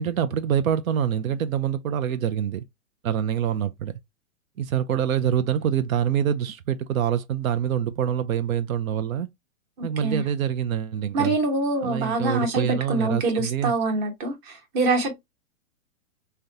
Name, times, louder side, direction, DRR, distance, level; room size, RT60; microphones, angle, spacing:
voice 1, 0.0-2.6 3.0-3.9 4.6-9.3 9.8-11.4 11.8-13.7, right 9 dB, 90° right, 0.5 m, -25 dB
voice 2, 11.1-15.3, right 2 dB, 25° right, 0.9 m, -25 dB
3.6 x 2.2 x 2.6 m
hypercardioid pair, 140°, 40 cm